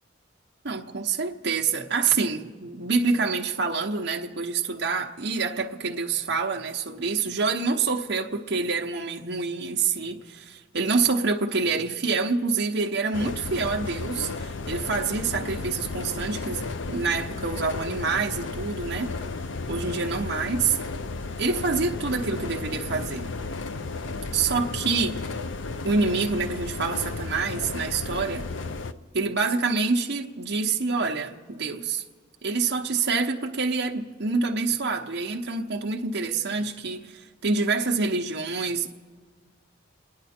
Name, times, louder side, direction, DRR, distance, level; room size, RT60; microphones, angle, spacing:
voice 1, 0.6-19.1 19.7-20.8 21.4-23.3 24.3-25.2 25.8-28.5 29.1-32.0 32.4-38.9, right 4 dB, 55° right, 0.9 m, -27 dB
sound 1, 13.1-28.9, left 3 dB, 65° left, 0.6 m, -33 dB
28.5 x 10.5 x 4.4 m
head